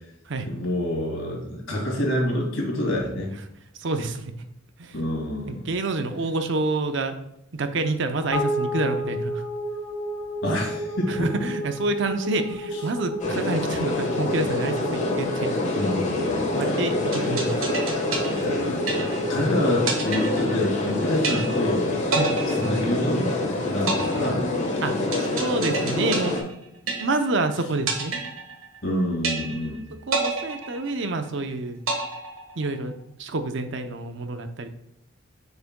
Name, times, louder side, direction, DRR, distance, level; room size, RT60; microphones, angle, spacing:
voice 1, 0.4-3.3 4.9-5.7 10.4-11.3 15.7-16.3 18.4-19.0 19.3-22.1 22.5-24.5 28.8-29.8, left 1 dB, 65° left, -1 dB, 2.1 m, -27 dB
voice 2, 3.8-4.3 4.8-5.0 5.5-7.2 7.5-9.4 11.1-15.5 16.5-17.5 22.1-22.3 24.8-26.6 27.0-28.1 30.1-31.8 32.6-32.9 33.2-34.7, right 2 dB, 60° right, 8 dB, 0.6 m, -28 dB
sound 1, 8.3-20.8, right 1 dB, 15° left, 1.6 m, -32 dB
sound 2, 13.2-26.4, left 2 dB, 35° left, 1.2 m, -26 dB
sound 3, 17.1-19.4 19.9-20.9 21.2-21.8 22.1-23.4 23.9-27.4 27.9-28.9 29.2-29.8 30.1-31.4 31.9-32.9, right 4 dB, 80° right, 1.4 m, -29 dB
7.0 x 6.6 x 2.2 m, 0.79 s
head